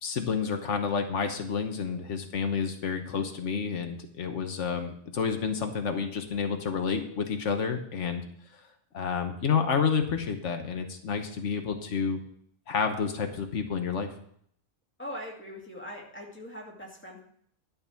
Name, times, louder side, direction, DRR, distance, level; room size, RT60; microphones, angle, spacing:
voice 1, 0.0-8.2 8.9-12.2 12.7-14.1, left 6 dB, 85° left, 6 dB, 1.4 m, -29 dB
voice 2, 15.0-17.2, equal, 10° left, -2 dB, 2.3 m, -41 dB
11.5 x 5.5 x 7.0 m, 0.66 s
omnidirectional pair, 1.2 m